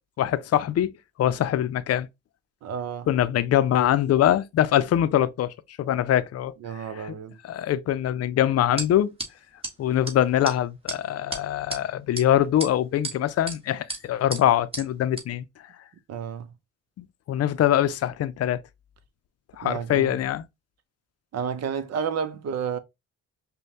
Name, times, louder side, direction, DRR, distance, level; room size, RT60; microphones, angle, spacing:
voice 1, 0.2-0.9 1.2-2.1 3.1-7.1 7.4-9.1 9.8-15.5 17.0-18.6 19.6-20.5, left 11 dB, 55° left, 0.5 m, -23 dB
voice 2, 2.6-3.1 6.6-7.4 16.1-16.5 19.6-20.1 21.3-22.8, right 7 dB, 60° right, 0.7 m, -31 dB
sound 1, 8.8-8.9 9.2-9.3 9.6-9.7 10.1-10.2 10.4-10.6 10.9-11.0 11.3-11.8 12.2-12.3 12.6-13.2 13.5-13.6 13.9-14.0 14.3-14.4 14.7-14.8 15.2-15.3, right 2 dB, 20° right, 1.3 m, -32 dB
5.2 x 2.2 x 2.8 m
cardioid pair, 90°, 30 cm